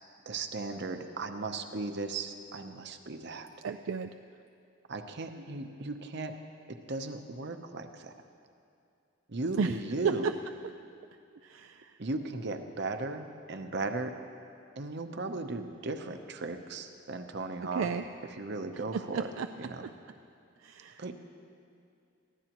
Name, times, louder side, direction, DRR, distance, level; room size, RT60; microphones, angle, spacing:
voice 1, 0.3-3.5 4.9-6.4 6.7-8.1 9.3-10.3 12.0-14.2 14.8-17.9 18.4-19.3 19.6-19.8 21.0-21.1, right 3 dB, 55° right, 6 dB, 0.9 m, -36 dB
voice 2, 3.6-4.1 9.6-9.7 10.0-10.1 11.4-11.9 17.7-18.0 18.9-19.5 19.8-19.9 20.6-21.0, right 6 dB, 75° right, 7 dB, 0.4 m, -32 dB
23.0 x 15.5 x 3.0 m, 2.5 s
head